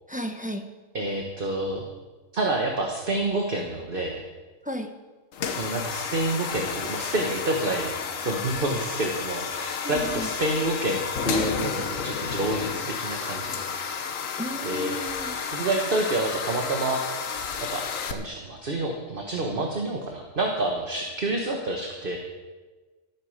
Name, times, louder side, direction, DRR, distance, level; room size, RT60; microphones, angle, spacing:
voice 1, 0.1-0.6 4.6-4.9 9.8-10.3 14.4-15.4, equal, 5° right, 5 dB, 0.8 m, -34 dB
voice 2, 0.9-1.8 2.3-4.2 5.6-13.6 14.6-15.0 15.5-17.0 17.7-17.8 18.1-22.2, right 2 dB, 45° right, 2 dB, 1.4 m, -28 dB
sound 1, 5.3-18.1, left 6 dB, 80° left, 1.3 m, -31 dB
14.0 x 9.0 x 6.6 m, 1.3 s
omnidirectional pair, 1.3 m